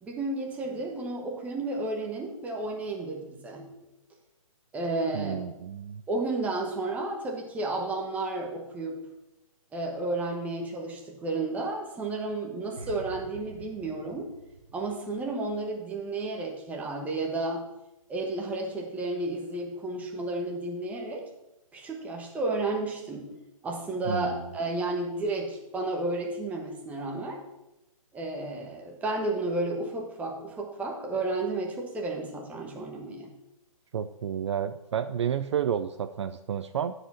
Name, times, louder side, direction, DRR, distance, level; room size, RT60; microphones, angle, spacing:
voice 1, 0.0-3.9 4.7-5.3 6.1-9.0 9.7-14.3 14.7-17.6 18.1-21.2 21.7-23.3 23.6-27.4 28.1-33.3, right 2 dB, 10° right, 0 dB, 1.2 m, -32 dB
voice 2, 5.1-6.0 24.1-24.5 33.9-36.9, right 8 dB, 55° right, 10 dB, 0.4 m, -31 dB
sound 1, 12.8-16.0 16.2-16.5, right 3 dB, 85° right, 1.1 m, -47 dB
8.8 x 4.9 x 5.7 m, 0.94 s
hypercardioid pair, 150°, 18 cm